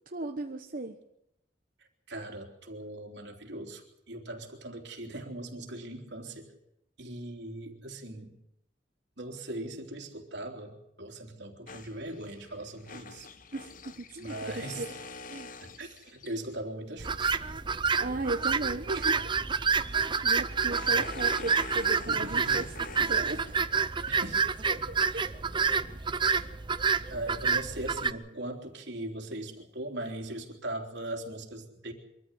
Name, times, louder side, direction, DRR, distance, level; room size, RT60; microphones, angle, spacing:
voice 1, 0.1-1.0 13.5-14.3 14.8-14.9 15.3-15.5 18.0-19.3 20.2-22.6 23.0-23.7 24.9-25.2, right 2 dB, 50° right, 3 dB, 1.1 m, -36 dB
voice 2, 2.1-6.5 7.0-8.4 9.2-13.3 14.2-15.0 15.6-17.5 20.8-21.1 22.0-22.6 24.1-24.8 27.1-31.9, right 1 dB, 75° right, 2 dB, 3.4 m, -40 dB
sound 1, 11.7-16.6 19.6-23.9, left 4 dB, 50° left, 1.0 m, -46 dB
sound 2, 17.0-28.1, right 5 dB, 25° right, 0.7 m, -28 dB
24.0 x 14.0 x 8.2 m, 0.83 s
head